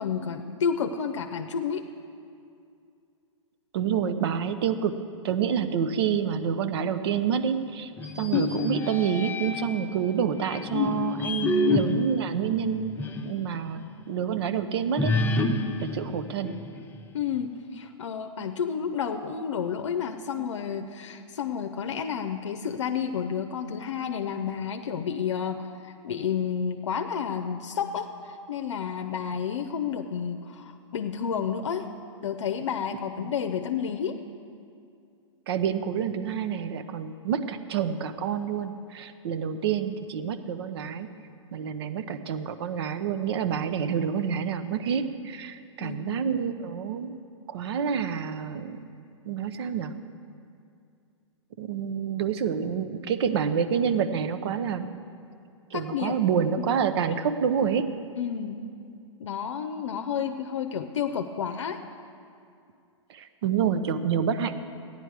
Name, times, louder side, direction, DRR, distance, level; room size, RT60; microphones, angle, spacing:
voice 1, 0.0-1.9 17.1-31.9 32.2-34.2 45.8-46.2 55.7-56.2 56.6-56.7 58.2-58.6 59.2-61.8, left 7 dB, 70° left, 6 dB, 0.7 m, -31 dB
voice 2, 3.7-5.0 5.2-7.9 8.2-13.0 13.2-15.1 15.8-16.5 33.2-33.3 35.5-41.1 41.5-47.2 47.5-48.8 49.2-49.9 51.6-54.9 55.7-57.9 63.1-64.6, right 7 dB, 55° right, 10 dB, 0.8 m, -28 dB
sound 1, 8.0-9.8 10.4-13.4 13.8-13.9 15.0-17.0, left 3 dB, 10° left, 0.8 m, -28 dB
15.5 x 9.9 x 4.7 m, 2.5 s
hypercardioid pair, 115°, 16 cm